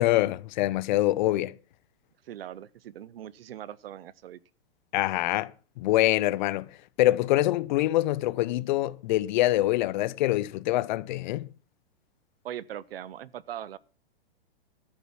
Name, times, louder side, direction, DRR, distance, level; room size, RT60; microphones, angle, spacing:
voice 1, 0.0-1.5 4.9-5.5 5.8-6.7 7.0-11.5, left 16 dB, 50° left, 0.6 m, -25 dB
voice 2, 2.2-4.4 12.4-13.8, right 11 dB, 75° right, 0.8 m, -40 dB
13.5 x 6.9 x 6.0 m
hypercardioid pair, 130°, 30 cm